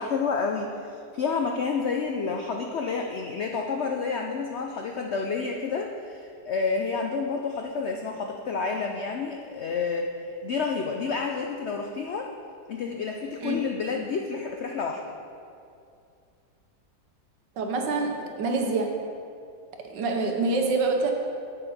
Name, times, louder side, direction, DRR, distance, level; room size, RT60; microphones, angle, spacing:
voice 1, 0.0-12.3 12.7-15.0, left 5 dB, 85° left, 2 dB, 0.6 m, -29 dB
voice 2, 17.6-19.0 19.9-21.1, right 3 dB, 85° right, 3 dB, 1.6 m, -26 dB
8.5 x 8.4 x 4.2 m, 2.4 s
omnidirectional pair, 1.9 m